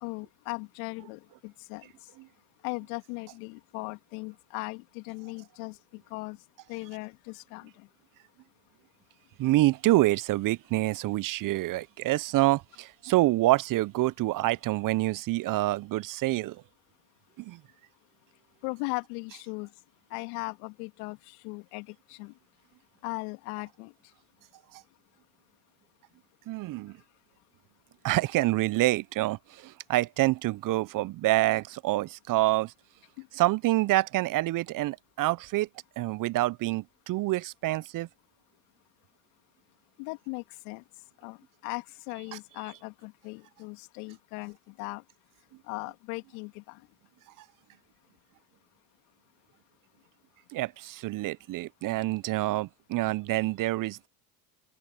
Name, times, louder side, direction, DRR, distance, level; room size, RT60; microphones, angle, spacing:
voice 1, 0.0-1.9 2.6-6.4 6.7-7.9 18.6-19.7 20.1-22.3 23.0-23.9 33.2-33.3 40.0-40.8 41.2-45.0 45.7-46.8, left 28 dB, 75° left, 2.6 m, -38 dB
voice 2, 9.4-16.6 17.4-17.6 26.5-27.0 28.0-32.7 33.3-35.7 36.0-38.1 42.3-42.4 50.5-54.1, right 17 dB, 45° right, 0.6 m, -27 dB
open air
hypercardioid pair, 80°, 45 cm